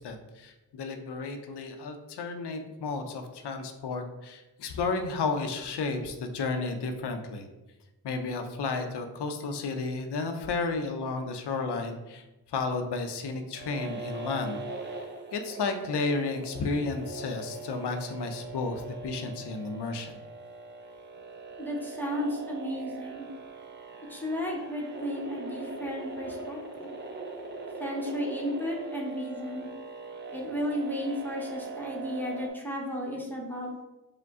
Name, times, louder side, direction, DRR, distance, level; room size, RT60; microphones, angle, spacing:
voice 1, 0.0-7.5 8.0-14.6 15.3-20.2, left 3 dB, 65° left, 6 dB, 0.7 m, -32 dB
sound 1, 13.5-32.5, right 3 dB, 25° right, 0.7 m, -41 dB
voice 2, 21.6-23.3 24.1-27.0 27.8-29.7 30.3-33.7, equal, 5° left, -2 dB, 1.0 m, -34 dB
4.9 x 2.2 x 3.6 m, 1.0 s
cardioid pair, 65°, 44 cm